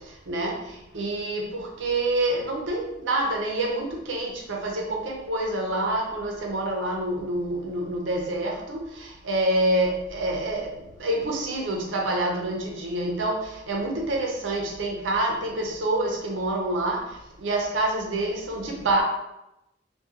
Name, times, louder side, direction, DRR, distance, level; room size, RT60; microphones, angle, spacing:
voice 1, 0.9-8.8 9.2-10.7 11.0-13.4 13.7-17.0 17.4-19.0, right 1 dB, 85° right, -1 dB, 0.6 m, -27 dB
2.3 x 2.3 x 2.8 m, 0.89 s
head